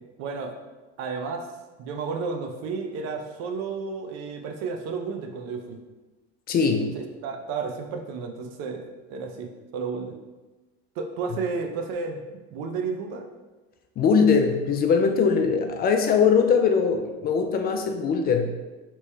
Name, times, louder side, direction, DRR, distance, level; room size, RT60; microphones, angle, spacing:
voice 1, 0.2-0.5 1.0-1.5 1.8-5.8 6.9-10.1 11.0-12.2 12.5-13.3, right 4 dB, 60° right, 4 dB, 0.6 m, -32 dB
voice 2, 6.5-6.9 14.0-18.5, left 5 dB, 35° left, 5 dB, 0.4 m, -21 dB
2.9 x 2.9 x 3.3 m, 1.2 s
supercardioid pair, 95°, 29 cm